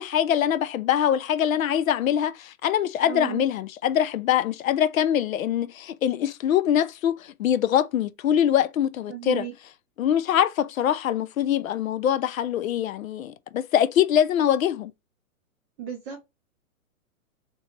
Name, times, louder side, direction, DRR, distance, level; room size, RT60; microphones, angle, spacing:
voice 1, 0.0-9.5 10.0-14.9, left 10 dB, 70° left, 0.6 m, -23 dB
voice 2, 3.0-3.5 9.1-9.5 15.8-16.2, right 10 dB, 10° right, 0.4 m, -34 dB
3.4 x 3.0 x 2.9 m
hypercardioid pair, 150°, 42 cm